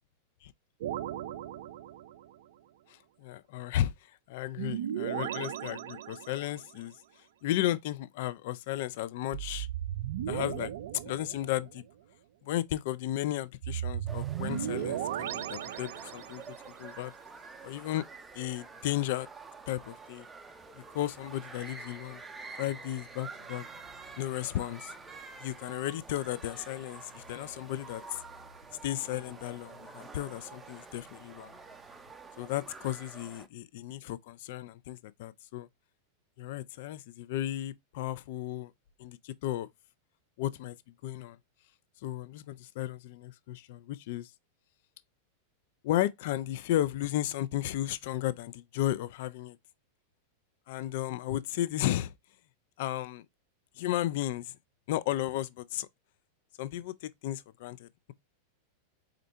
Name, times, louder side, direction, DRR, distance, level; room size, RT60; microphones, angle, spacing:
sound 1, 0.8-2.4 4.6-6.6 9.3-11.8 13.6-16.6, right 11 dB, 55° right, 0.3 m, -36 dB
voice 1, 2.9-9.7 10.3-10.7 11.0-11.8 12.4-17.1 17.6-18.1 18.3-19.3 19.7-20.3 20.7-22.2 22.6-23.6 24.2-24.9 25.4-28.2 28.8-31.6 32.4-35.7 36.4-38.7 39.0-39.7 40.4-40.8 41.0-41.4 42.0-44.3 45.8-49.6 50.7-52.1 52.8-53.3 53.7-54.5 54.9-55.9 56.6-58.1, left 13 dB, 50° left, 0.4 m, -34 dB
sound 2, 14.1-33.5, right 4 dB, 10° right, 0.6 m, -48 dB
sound 3, 23.0-32.1, left 2 dB, 75° left, 0.8 m, -62 dB
4.3 x 3.8 x 3.2 m
figure-of-eight pair, 90°, 0 cm